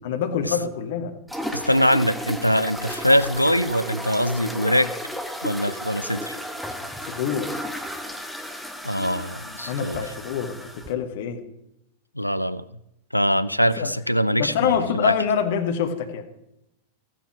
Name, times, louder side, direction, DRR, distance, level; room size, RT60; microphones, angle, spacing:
voice 1, 0.0-1.2 7.1-7.6 9.4-11.4 13.8-13.9 14.4-16.2, left 7 dB, 55° left, 9 dB, 1.2 m, -26 dB
sound 1, 1.3-10.9, equal, ahead, 1.2 m, -34 dB
voice 2, 1.5-5.0 5.4-6.4 8.8-10.0 12.2-12.6 13.1-15.2, equal, 90° left, 15 dB, 0.4 m, -22 dB
14.0 x 9.1 x 5.9 m, 0.82 s
figure-of-eight pair, 90°, 0 cm